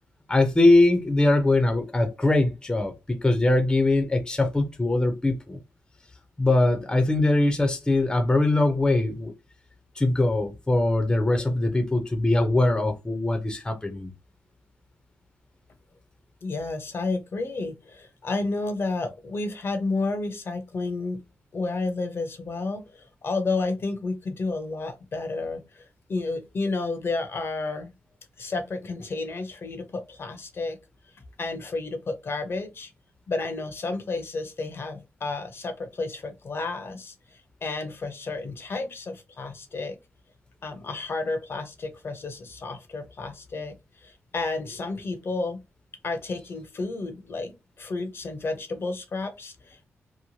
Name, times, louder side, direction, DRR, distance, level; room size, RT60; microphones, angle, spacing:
voice 1, 0.3-5.6 6.4-9.3 10.0-14.1, left 2 dB, 15° left, 0.6 m, -22 dB
voice 2, 16.4-21.2 21.5-27.9 28.4-30.8 31.4-32.9 33.3-37.1 37.6-40.0 40.6-43.8 44.0-45.6 46.0-49.9, left 3 dB, 50° left, 0.7 m, -31 dB
3.0 x 2.1 x 2.7 m
cardioid pair, 80°, 5 cm